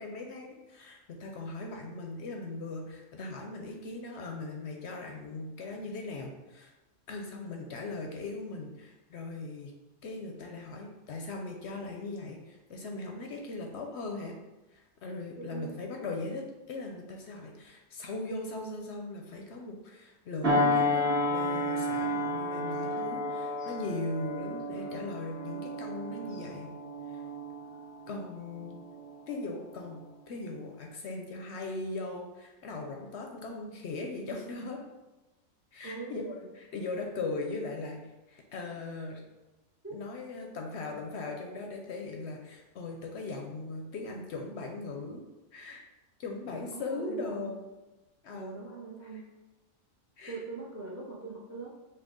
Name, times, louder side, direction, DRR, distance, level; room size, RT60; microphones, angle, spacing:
voice 1, 0.0-6.7 7.1-9.7 10.0-14.4 14.7-26.7 27.1-27.2 28.1-28.8 29.3-34.8 35.7-38.0 38.3-39.2 39.9-45.2 45.5-45.8 46.2-47.6 48.2-48.5 50.2-50.4, left 3 dB, 65° left, 1 dB, 0.8 m, -39 dB
voice 2, 15.4-15.7 35.8-36.2 39.8-40.0 46.7-47.5 48.3-49.3 50.3-51.7, right 4 dB, 20° right, -3 dB, 0.4 m, -41 dB
sound 1, 20.4-29.3 29.8-30.0, left 1 dB, 45° right, 1.7 m, -32 dB
5.6 x 2.3 x 3.6 m, 1.1 s
omnidirectional pair, 1.4 m